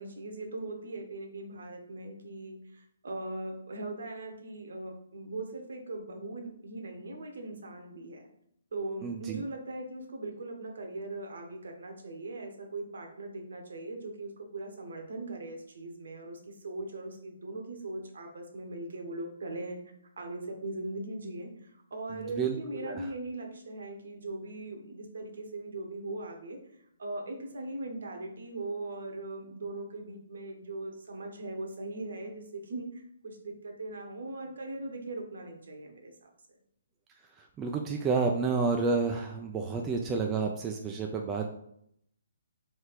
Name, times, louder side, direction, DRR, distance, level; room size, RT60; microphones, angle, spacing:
voice 1, 0.0-8.3 8.7-19.8 20.2-26.6 27.0-36.3, right 2 dB, 60° right, 3 dB, 0.9 m, -40 dB
voice 2, 9.0-9.4 22.1-23.1 37.4-41.5, right 4 dB, 15° right, 2 dB, 0.4 m, -30 dB
3.4 x 3.2 x 4.6 m, 0.72 s
figure-of-eight pair, 130°, 0 cm